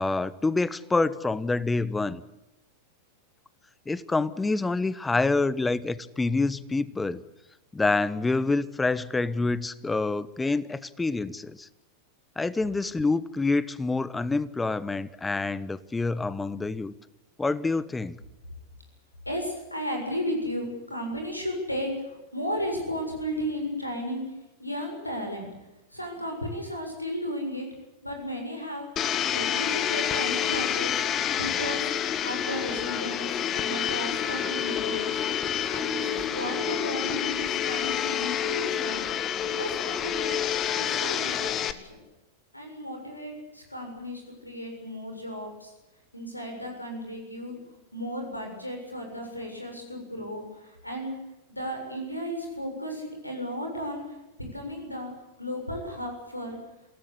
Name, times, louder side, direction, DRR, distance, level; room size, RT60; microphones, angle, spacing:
voice 1, 0.0-2.2 3.9-7.2 7.7-11.7 12.4-16.9 17.4-18.2, left 3 dB, 10° left, 18 dB, 1.1 m, -27 dB
voice 2, 19.3-24.3 24.6-25.5 25.9-27.7 28.0-28.9 29.3-31.0 31.4-31.9 32.2-35.2 35.7-39.0 39.4-40.4 40.8-41.6 41.9-42.0 42.5-45.7 46.1-47.6 47.9-51.2 51.5-54.0 54.4-55.1 55.4-56.6, equal, 85° left, 3 dB, 7.1 m, -34 dB
Domestic sounds home sounds, 29.0-41.7, left 9 dB, 30° left, 1.6 m, -28 dB
27.0 x 18.0 x 8.5 m, 0.97 s
figure-of-eight pair, 90°, 0 cm